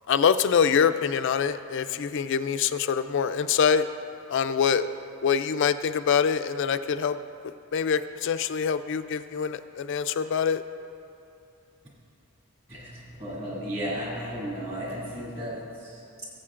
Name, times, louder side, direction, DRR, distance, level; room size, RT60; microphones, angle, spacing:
voice 1, 0.1-3.8 4.3-4.9 5.2-7.2 7.7-10.6, left 7 dB, 55° left, 12 dB, 0.3 m, -24 dB
voice 2, 12.7-16.2, equal, 30° right, -5 dB, 2.2 m, -34 dB
18.5 x 7.8 x 2.5 m, 2.7 s
head